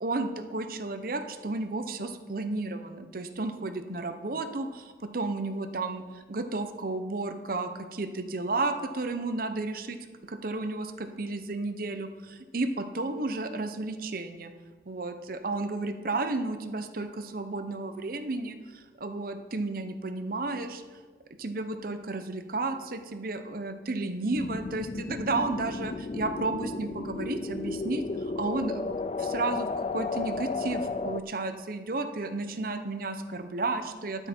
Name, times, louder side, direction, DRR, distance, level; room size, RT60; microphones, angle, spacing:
voice 1, 0.0-6.0 6.3-10.0 10.3-14.5 14.9-20.8 21.4-34.3, right 2 dB, 50° right, 9 dB, 0.8 m, -32 dB
sound 1, 24.3-31.2, left 3 dB, 35° left, 0.3 m, -33 dB
12.0 x 9.4 x 4.4 m, 1.4 s
head